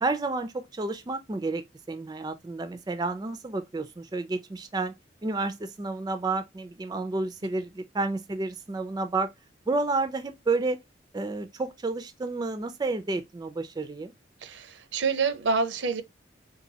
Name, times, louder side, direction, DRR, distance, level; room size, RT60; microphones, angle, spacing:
voice 1, 0.0-4.9 5.2-9.3 9.7-10.8 11.1-14.1, right 3 dB, 20° right, 0.3 m, -30 dB
voice 2, 14.4-16.0, right 4 dB, 75° right, 0.5 m, -27 dB
4.0 x 2.6 x 2.7 m
head